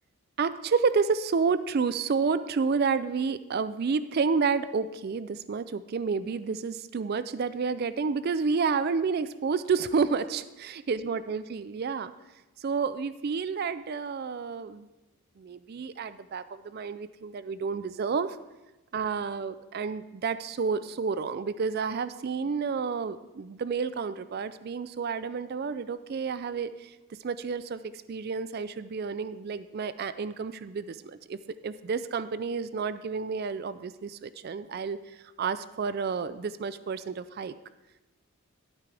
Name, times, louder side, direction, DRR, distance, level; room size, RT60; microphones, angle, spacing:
voice 1, 0.4-12.1 12.6-14.9 15.4-18.4 18.9-26.9 27.2-27.8 28.1-31.4 31.6-35.0 35.4-37.5, right 5 dB, 45° right, 14 dB, 0.3 m, -30 dB
13.0 x 8.2 x 3.4 m, 1.0 s
head